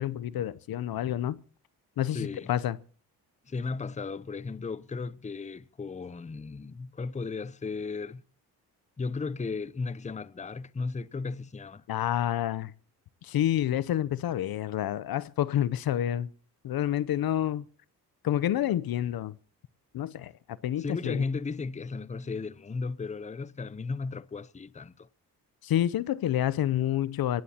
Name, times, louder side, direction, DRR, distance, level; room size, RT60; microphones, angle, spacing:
voice 1, 0.0-1.4 2.0-2.8 11.9-12.7 13.2-16.3 16.6-17.6 18.2-19.4 19.9-20.3 20.6-21.3 25.6-27.4, left 11 dB, 65° left, 0.7 m, -28 dB
voice 2, 2.1-2.5 3.5-8.2 9.0-11.8 20.8-25.1, left 4 dB, 20° left, 0.7 m, -35 dB
27.0 x 17.0 x 2.9 m
supercardioid pair, 60°, 40 cm